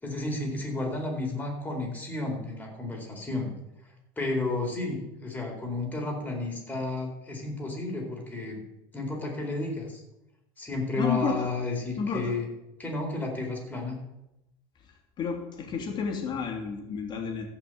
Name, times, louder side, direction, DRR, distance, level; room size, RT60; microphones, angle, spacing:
voice 1, 0.0-3.5 4.2-8.6 8.9-10.0 10.6-12.5 12.8-14.0, left 2 dB, 15° left, 0 dB, 4.1 m, -32 dB
voice 2, 11.0-11.5 12.0-12.3 15.2-17.5, left 6 dB, 40° left, 2 dB, 3.0 m, -31 dB
15.0 x 5.9 x 7.8 m, 0.91 s
supercardioid pair, 125°, 12 cm